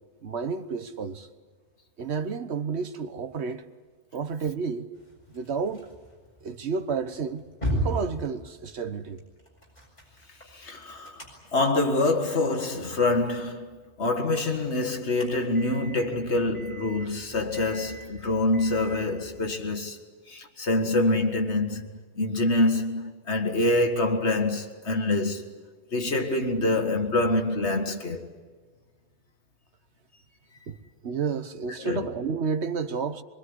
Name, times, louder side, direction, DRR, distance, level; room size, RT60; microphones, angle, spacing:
voice 1, 0.2-1.3 2.0-3.7 4.1-4.9 5.3-5.9 6.4-7.4 7.7-9.2 30.7-30.8 31.0-33.2, right 5 dB, 70° right, 1.4 m, -31 dB
sound 1, 4.9-19.6, right 1 dB, 35° left, 7.6 m, -39 dB
voice 2, 10.5-11.2 11.5-13.7 14.0-20.0 20.3-21.9 22.2-25.5 25.9-28.3 31.8-32.1, left 2 dB, 70° left, 2.2 m, -25 dB
24.0 x 23.5 x 9.8 m
omnidirectional pair, 1.2 m